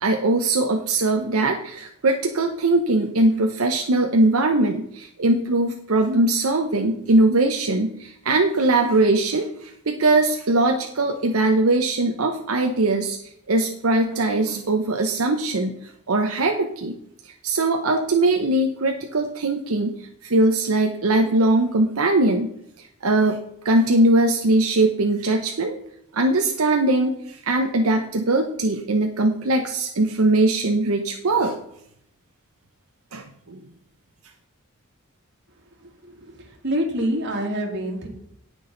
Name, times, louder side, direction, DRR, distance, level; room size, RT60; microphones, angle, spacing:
voice 1, 0.0-13.2 13.5-17.0 17.2-22.5 22.8-23.4 23.6-25.8 26.1-31.6 33.1-33.6, right 2 dB, 85° right, 4 dB, 0.8 m, -21 dB
voice 2, 36.0-38.1, equal, 55° right, 1 dB, 2.5 m, -26 dB
18.0 x 6.3 x 3.9 m, 0.73 s
head